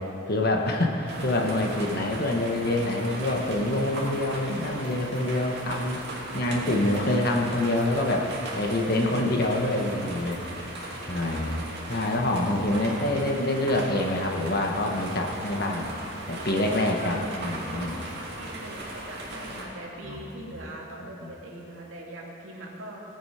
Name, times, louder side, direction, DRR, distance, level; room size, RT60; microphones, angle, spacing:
voice 1, 0.3-6.0 6.3-8.3 8.6-10.7 11.1-15.9 16.3-18.0 20.0-20.6 21.0-21.3, left 1 dB, 50° left, 1 dB, 1.5 m, -26 dB
sound 1, 1.1-19.6, right 1 dB, 55° right, 2.6 m, -37 dB
voice 2, 2.6-3.2 11.0-11.6 17.0-17.3 17.8-17.9 18.4-23.0, right 1 dB, 80° right, -2 dB, 2.4 m, -42 dB
18.0 x 8.8 x 5.1 m, 2.9 s
head